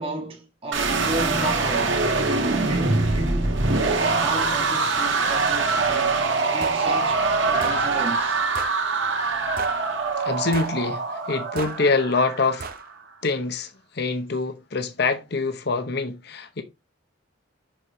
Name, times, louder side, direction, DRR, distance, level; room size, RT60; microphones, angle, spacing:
voice 1, 0.0-2.0 2.6-6.2 6.5-8.4, right 1 dB, 30° right, 1.6 m, -33 dB
sound 1, 0.7-12.8, right 3 dB, 70° right, 1.6 m, -23 dB
sound 2, 6.6-6.8 7.6-7.8 8.5-8.8 9.6-9.8 10.5-10.8 11.6-11.8 12.6-12.8, right 5 dB, 50° right, 0.8 m, -35 dB
voice 2, 10.2-12.7 13.2-16.6, left 3 dB, 55° left, 0.9 m, -25 dB
6.4 x 6.1 x 3.1 m
head